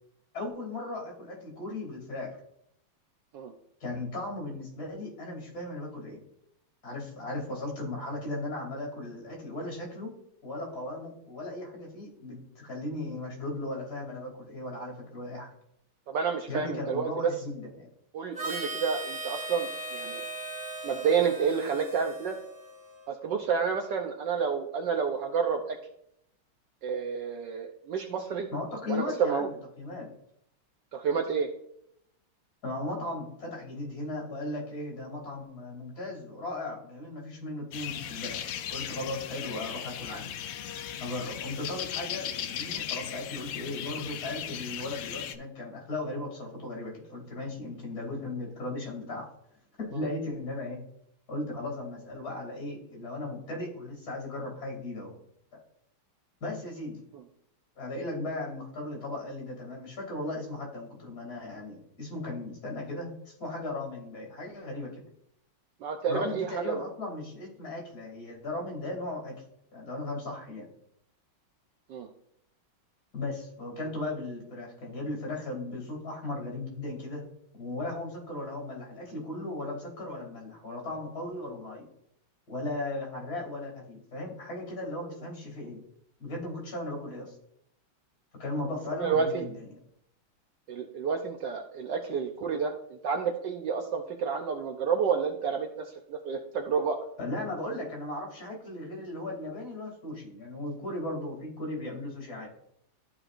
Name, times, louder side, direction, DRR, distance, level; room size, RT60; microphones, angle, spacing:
voice 1, 0.3-2.4 3.8-6.2 6.8-10.1 10.4-15.5 16.5-17.9 28.5-30.1 32.6-38.4 38.7-40.3 41.0-49.3 49.8-50.8 51.3-55.1 56.4-57.0 57.7-65.0 66.1-69.3 69.7-70.7 73.1-77.2 77.5-81.9 82.5-85.8 86.2-87.3 88.3-89.7 97.2-102.5, left 2 dB, 45° left, 0 dB, 3.3 m, -37 dB
voice 2, 16.1-17.1 18.1-20.2 20.8-22.3 23.1-25.8 26.8-28.5 28.9-29.5 30.9-31.5 65.8-66.8 71.9-72.1 89.0-89.4 90.7-92.7 93.0-97.0, right 6 dB, 70° right, 4 dB, 1.2 m, -29 dB
Harmonica, 18.3-23.1, right 2 dB, 5° right, 2.4 m, -38 dB
sound 1, 37.7-45.4, left 10 dB, 80° left, 1.3 m, -37 dB
13.5 x 4.9 x 2.5 m, 0.73 s
omnidirectional pair, 2.3 m